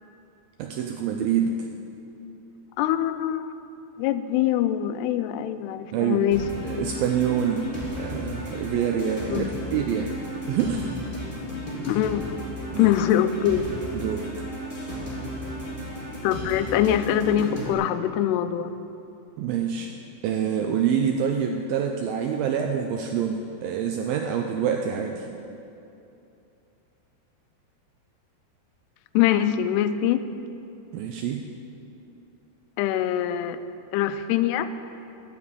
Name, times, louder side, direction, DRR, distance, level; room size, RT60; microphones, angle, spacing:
voice 1, 0.6-1.7 5.9-6.3 6.6-10.2 10.5-10.9 12.7-12.9 14.0-14.3 19.4-19.9 20.2-25.3 30.9-31.5, right 8 dB, 90° right, 4 dB, 2.1 m, -26 dB
voice 2, 2.8-3.5 4.0-6.4 9.3-9.6 11.9-12.2 12.8-13.7 16.2-18.7 29.1-30.2 32.8-33.6 33.9-34.7, left 11 dB, 85° left, 11 dB, 2.6 m, -23 dB
sound 1, 6.3-17.7, equal, 15° left, 2.0 m, -34 dB
13.5 x 7.4 x 8.3 m, 2.7 s
omnidirectional pair, 4.8 m